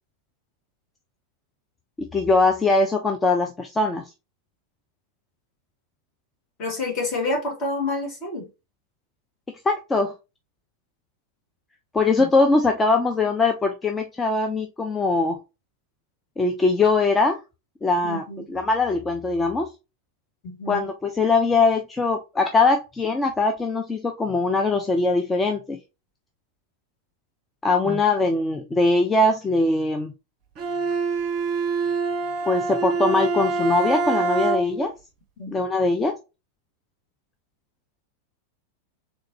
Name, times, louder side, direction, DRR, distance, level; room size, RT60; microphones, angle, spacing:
voice 1, 2.0-4.1 9.7-10.1 11.9-15.4 16.4-17.4 17.8-19.7 20.7-25.8 27.6-30.1 32.5-34.9 35.5-36.1, left 3 dB, 15° left, 0.4 m, -21 dB
voice 2, 6.6-8.4 12.2-12.3 18.0-18.4 20.4-20.9 27.8-28.0 35.4-35.5, left 2 dB, 40° left, 1.7 m, -28 dB
Bowed string instrument, 30.6-34.9, right 4 dB, 40° right, 0.5 m, -25 dB
3.8 x 2.6 x 2.7 m
figure-of-eight pair, 90°, 0 cm